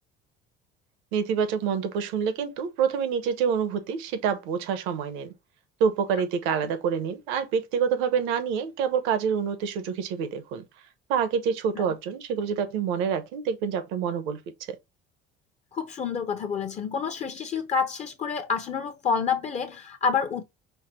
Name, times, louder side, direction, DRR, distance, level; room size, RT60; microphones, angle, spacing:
voice 1, 1.1-5.3 5.8-10.6 11.1-14.4 14.7-14.8, right 7 dB, 85° right, 1.0 m, -27 dB
voice 2, 15.7-20.4, left 6 dB, 35° left, 0.7 m, -28 dB
5.7 x 2.1 x 4.3 m
cardioid pair, 135°, 20 cm